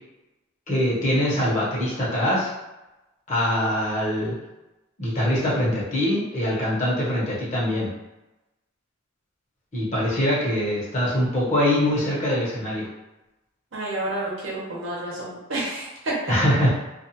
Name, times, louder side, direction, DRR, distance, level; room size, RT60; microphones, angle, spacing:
voice 1, 0.7-2.5 3.3-4.3 5.0-7.9 9.7-12.9 16.3-16.7, equal, 35° left, -7 dB, 1.0 m, -23 dB
voice 2, 13.7-16.3, right 1 dB, 70° right, -5 dB, 0.9 m, -30 dB
2.5 x 2.3 x 2.8 m, 1.0 s
head